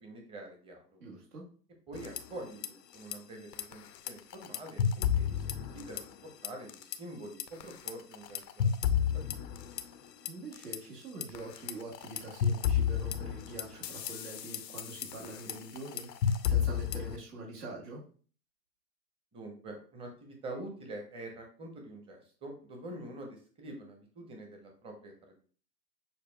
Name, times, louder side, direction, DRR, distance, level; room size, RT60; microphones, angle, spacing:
voice 1, 0.0-1.0 1.9-8.4 9.0-9.5 19.3-25.4, right 1 dB, 10° right, 2 dB, 0.8 m, -46 dB
voice 2, 1.0-1.4 10.3-18.0, right 2 dB, 70° right, -3 dB, 1.7 m, -44 dB
sound 1, 1.9-2.7 2.9-3.2 3.5-6.2 6.4-7.0 7.4-10.8 11.2-17.2, left 8 dB, 90° left, 0.6 m, -32 dB
6.6 x 2.3 x 2.2 m, 0.41 s
hypercardioid pair, 115°, 48 cm